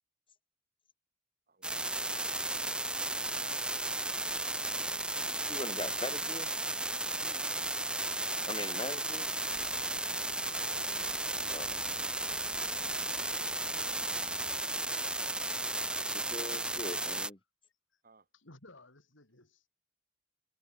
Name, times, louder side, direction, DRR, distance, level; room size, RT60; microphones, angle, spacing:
voice 1, 1.5-2.5 7.2-7.9 18.0-18.3, right 1 dB, 50° right, 7.3 m, -63 dB
sound 1, 1.6-17.3, right 2 dB, 5° right, 0.6 m, -34 dB
voice 2, 5.5-6.5 8.5-9.3 11.5-11.8 16.1-17.4, left 2 dB, 25° left, 2.2 m, -41 dB
sound 2, 9.5-14.6, right 2 dB, 35° right, 3.7 m, -57 dB
voice 3, 18.3-19.7, left 2 dB, 75° left, 4.4 m, -57 dB
head